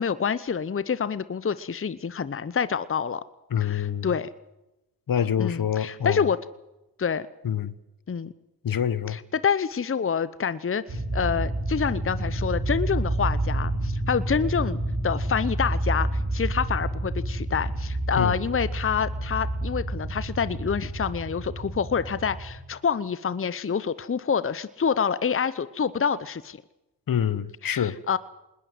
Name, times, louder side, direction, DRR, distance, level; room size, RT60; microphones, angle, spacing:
voice 1, 0.0-3.2 3.6-4.3 5.4-6.4 7.0-7.3 8.1-8.3 9.1-26.6 27.6-28.2, left 6 dB, 35° left, 0.9 m, -27 dB
voice 2, 3.5-4.1 5.1-6.3 7.4-7.7 8.6-9.2 18.2-18.4 27.1-28.0, left 9 dB, 60° left, 1.2 m, -26 dB
sound 1, 10.9-22.6, right 1 dB, 60° right, 5.2 m, -29 dB
20.5 x 20.0 x 7.9 m
cardioid pair, 55°, 39 cm